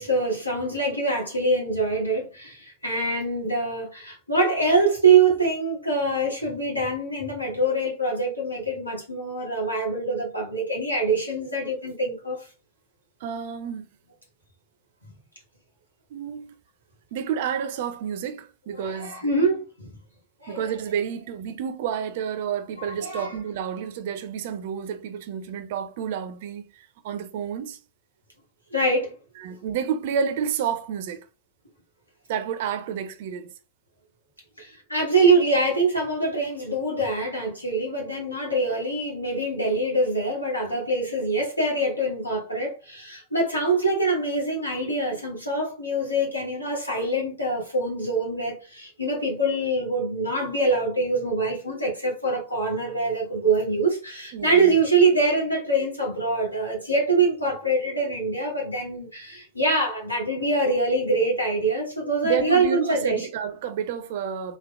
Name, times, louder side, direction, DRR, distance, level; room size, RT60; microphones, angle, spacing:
voice 1, 0.0-12.4 18.8-20.0 20.4-20.7 23.0-23.3 28.7-29.1 34.6-63.2, right 2 dB, 85° left, 1.2 m, -24 dB
voice 2, 13.2-13.9 16.1-16.5 17.1-19.3 20.5-27.8 29.4-31.2 32.3-33.5 54.3-54.7 62.2-64.6, right 7 dB, 55° right, 0.4 m, -30 dB
3.6 x 2.2 x 2.3 m
figure-of-eight pair, 90°, 0 cm